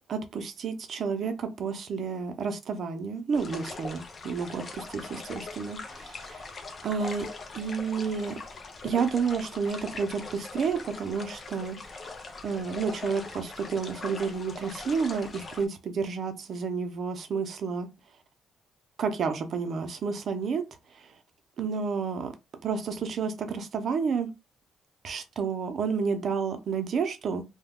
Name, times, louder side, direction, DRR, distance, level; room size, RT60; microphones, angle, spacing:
voice 1, 0.1-6.4 6.8-7.3 7.5-8.4 8.8-12.1 12.4-17.9 19.0-20.6 20.9-21.1 21.6-22.3 22.6-24.3 25.0-27.4, right 5 dB, 55° right, 0.6 m, -30 dB
sound 1, 3.3-15.7, left 3 dB, 40° left, 0.5 m, -41 dB
2.2 x 2.2 x 3.5 m
cardioid pair, 90°, 0 cm